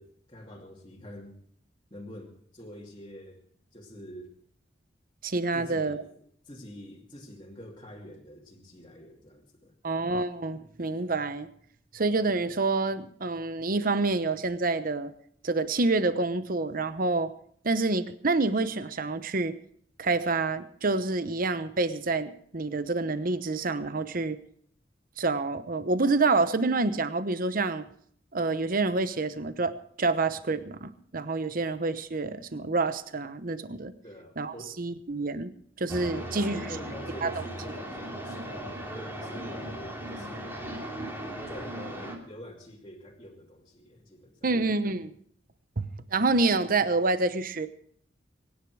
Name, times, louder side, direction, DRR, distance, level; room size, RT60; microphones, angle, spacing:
voice 1, 0.0-1.3 1.9-3.4 3.7-4.3 5.5-6.2 6.4-9.7 34.0-34.8 36.1-38.6 38.9-40.6 41.5-44.5, equal, 25° left, -3 dB, 2.5 m, -46 dB
voice 2, 5.2-6.0 9.8-11.5 11.9-15.1 15.4-17.3 17.6-19.5 20.0-24.4 25.2-27.8 28.3-33.9 34.4-35.5 35.8-36.6 37.2-37.3 44.4-45.1 45.8-47.7, right 3 dB, 50° right, 12 dB, 0.9 m, -27 dB
sound 1, 35.9-42.2, right 1 dB, 15° right, 2.8 m, -37 dB
23.5 x 10.5 x 4.7 m, 0.62 s
head